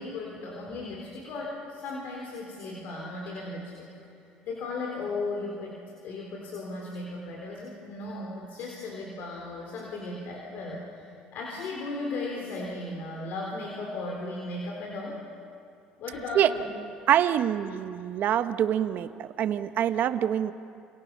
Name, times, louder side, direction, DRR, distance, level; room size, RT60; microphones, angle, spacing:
voice 1, 0.0-3.9 4.5-15.2 16.0-16.7, left 2 dB, 70° left, -1 dB, 4.1 m, -36 dB
voice 2, 17.1-20.5, right 10 dB, 60° right, 11 dB, 1.1 m, -25 dB
30.0 x 27.5 x 5.7 m, 2.5 s
supercardioid pair, 80°, 3 cm